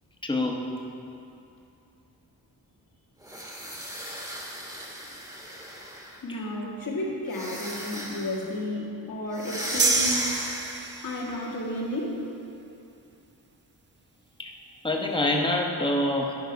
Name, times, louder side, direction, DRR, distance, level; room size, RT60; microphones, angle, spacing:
voice 1, 0.2-0.6 6.3-6.8 14.4-14.5 14.8-16.3, left 1 dB, 15° left, 0 dB, 1.0 m, -26 dB
sound 1, 3.2-6.2 7.3-8.4 9.3-11.1, equal, 10° right, 1.2 m, -35 dB
voice 2, 6.2-10.3 11.0-12.2, left 1 dB, 60° left, -3 dB, 1.8 m, -32 dB
sound 2, 9.8-11.4, right 4 dB, 30° right, 0.5 m, -27 dB
10.5 x 5.7 x 5.2 m, 2.7 s
wide cardioid pair, 110°, 38 cm